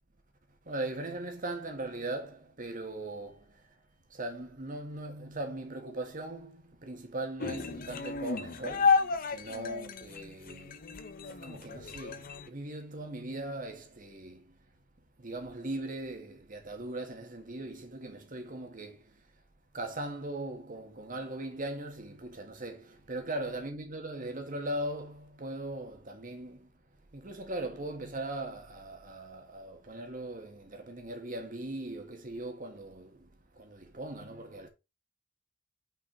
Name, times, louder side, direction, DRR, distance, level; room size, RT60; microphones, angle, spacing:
voice 1, 0.7-3.8 4.1-10.9 11.2-14.6 15.2-19.3 19.7-26.7 27.1-34.7, right 2 dB, 45° right, 1.6 m, -39 dB
sound 1, 7.4-12.5, left 5 dB, 45° left, 0.7 m, -31 dB
5.9 x 4.5 x 4.3 m
head